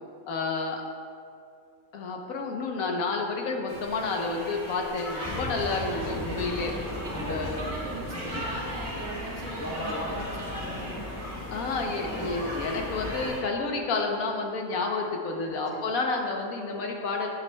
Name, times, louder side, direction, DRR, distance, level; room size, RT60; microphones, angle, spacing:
voice 1, 0.3-0.8 1.9-6.8 7.3-7.6 11.5-17.3, left 3 dB, 80° left, 2 dB, 1.3 m, -30 dB
sound 1, 3.7-13.4, equal, 35° right, 1.7 m, -39 dB
sound 2, 5.2-13.3, left 1 dB, 15° left, 0.7 m, -36 dB
voice 2, 7.0-11.1 15.4-15.8, right 2 dB, 60° right, -5 dB, 1.8 m, -40 dB
9.6 x 8.9 x 2.3 m, 2.3 s
omnidirectional pair, 1.5 m